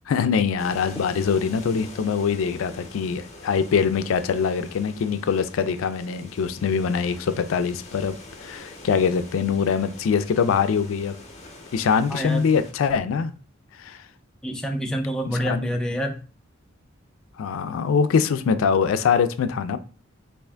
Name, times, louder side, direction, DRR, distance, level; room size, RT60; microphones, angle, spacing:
voice 1, 0.1-11.2 11.7-13.3 13.8-14.0 15.3-15.7 17.4-19.8, left 6 dB, 80° left, 0.3 m, -23 dB
sound 1, 0.6-12.7, left 2 dB, 35° left, 0.8 m, -44 dB
voice 2, 12.1-12.4 14.4-16.2, equal, 5° left, 0.3 m, -27 dB
3.5 x 2.4 x 3.3 m
head